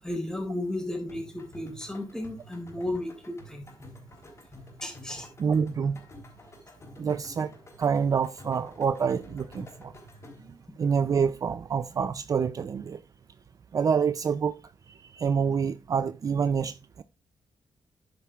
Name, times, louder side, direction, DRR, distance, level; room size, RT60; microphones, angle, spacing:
voice 1, 0.0-3.7 4.8-5.3, left 1 dB, 5° left, 3.7 m, -34 dB
sound 1, 1.1-10.6, left 1 dB, 35° left, 4.1 m, -50 dB
voice 2, 5.4-6.0 7.0-7.5 7.8-9.9 10.4-13.0 13.7-14.6 15.0-17.0, right 6 dB, 45° right, 0.4 m, -27 dB
10.5 x 9.3 x 2.4 m
cardioid pair, 105°, 8 cm